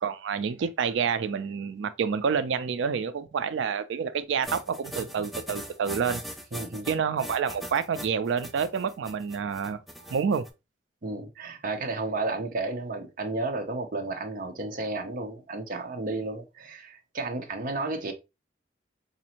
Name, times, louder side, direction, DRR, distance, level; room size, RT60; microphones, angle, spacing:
voice 1, 0.0-6.2 6.9-10.5, right 6 dB, 80° right, 0.4 m, -28 dB
sound 1, 4.4-10.5, equal, ahead, 0.4 m, -40 dB
voice 2, 6.5-7.0 11.0-18.1, right 2 dB, 45° right, 0.7 m, -32 dB
4.1 x 2.6 x 2.8 m
head